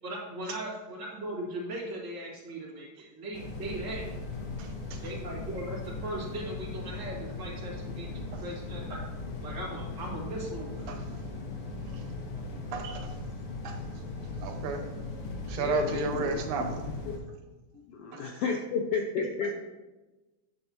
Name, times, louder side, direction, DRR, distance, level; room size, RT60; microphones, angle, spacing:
voice 1, 0.0-4.2 5.0-9.0 9.4-10.8 19.4-19.5, right 1 dB, 40° right, -4 dB, 2.5 m, -38 dB
sound 1, 3.3-17.2, left 3 dB, 55° left, 1.9 m, -38 dB
voice 2, 4.6-5.0 8.3-8.4 10.9-11.0 12.7-13.1 13.6-13.8 14.4-14.8 15.5-16.8 18.1-18.2, right 5 dB, 90° right, 4 dB, 2.4 m, -33 dB
voice 3, 15.6-17.1 17.7-19.5, left 5 dB, 75° left, 2 dB, 1.4 m, -32 dB
10.0 x 7.8 x 2.9 m, 1.1 s
omnidirectional pair, 3.3 m